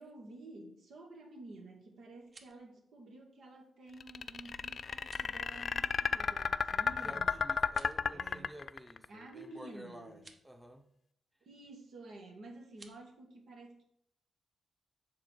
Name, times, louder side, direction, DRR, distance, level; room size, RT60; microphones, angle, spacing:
voice 1, 0.0-7.4 8.1-8.6 9.1-10.2 11.4-13.8, right 2 dB, 75° right, 0 dB, 1.8 m, -51 dB
sound 1, 2.1-2.7 5.0-5.4 7.6-8.1 10.1-10.4 12.7-13.0, right 2 dB, 40° right, 1.0 m, -57 dB
sound 2, 4.0-9.1, left 6 dB, 55° left, 0.3 m, -32 dB
voice 2, 7.0-10.8, equal, 5° right, 5 dB, 0.9 m, -51 dB
7.4 x 3.9 x 6.2 m, 0.74 s
cardioid pair, 75°, 0 cm